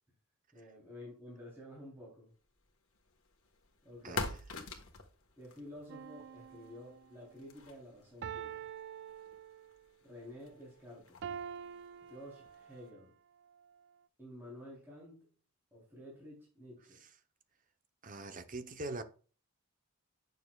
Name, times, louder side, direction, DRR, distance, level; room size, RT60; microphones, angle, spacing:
voice 1, 0.5-2.3 3.8-4.3 5.4-8.7 10.0-11.3 12.0-13.1 14.2-15.3 15.7-17.0, left 1 dB, 10° right, 3.5 m, -51 dB
sound 1, 2.6-12.9, left 4 dB, 65° left, 1.5 m, -48 dB
sound 2, 5.9-7.2 8.2-9.9 11.2-12.9 13.6-13.7, right 8 dB, 55° right, 0.3 m, -46 dB
voice 2, 18.0-19.0, right 2 dB, 40° right, 0.9 m, -42 dB
9.2 x 6.6 x 2.4 m
head